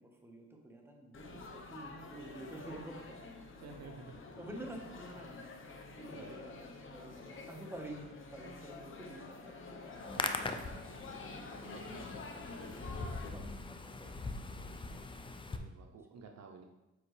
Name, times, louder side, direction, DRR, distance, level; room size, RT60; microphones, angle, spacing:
voice 1, 0.0-3.2 4.4-14.4, right 1 dB, 10° right, 1 dB, 1.3 m, -50 dB
Laughter / Chatter / Crowd, 1.1-13.3, left 3 dB, 40° left, 1.0 m, -49 dB
voice 2, 3.6-4.1 6.1-6.4 15.5-16.7, right 4 dB, 60° right, 3 dB, 0.7 m, -51 dB
Hands, 9.9-15.6, left 3 dB, 15° left, 0.5 m, -41 dB
7.8 x 5.2 x 3.3 m, 1.0 s
cardioid pair, 90°, 30 cm